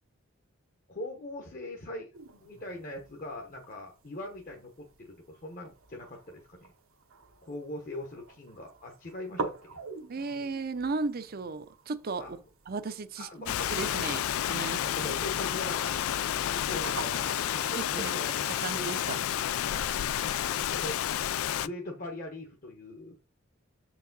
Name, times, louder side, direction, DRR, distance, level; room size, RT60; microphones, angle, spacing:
voice 1, 0.9-2.1 2.4-6.6 7.4-9.8 12.2-12.3 13.2-13.7 14.6-16.0 16.3-18.8 19.7-21.0 21.6-23.2, left 1 dB, 40° left, 1.0 m, -41 dB
sound 1, 2.1-20.5, right 3 dB, 75° right, 1.0 m, -46 dB
voice 2, 10.1-12.4 12.7-14.8 17.7-18.3 18.6-19.2, right 4 dB, 45° right, 0.6 m, -35 dB
Rain, 13.5-21.7, left 10 dB, 85° left, 0.3 m, -30 dB
6.7 x 4.7 x 3.9 m
head